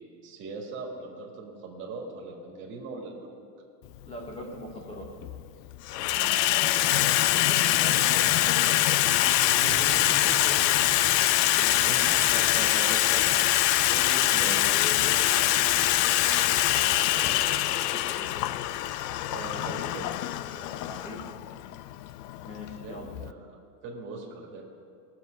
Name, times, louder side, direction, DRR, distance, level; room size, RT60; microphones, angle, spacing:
voice 1, 0.2-3.4 6.1-6.9 7.8-7.9 9.3-10.1 11.8-12.3 14.3-14.6 19.3-20.1 22.8-23.6 23.8-24.6, right 4 dB, 25° right, -2 dB, 2.0 m, -40 dB
Water tap faucet / Sink (filling or washing), 3.9-4.1 5.0-5.4 5.7-23.3, left 14 dB, 75° left, 0.6 m, -24 dB
voice 2, 4.1-5.1 7.1-8.5 8.9-9.7 10.2-11.0 11.6-13.4 13.9-18.3 20.5-21.3 22.4-23.1, equal, 15° left, 0 dB, 1.3 m, -41 dB
18.0 x 7.4 x 5.2 m, 2.5 s
supercardioid pair, 170°, 48 cm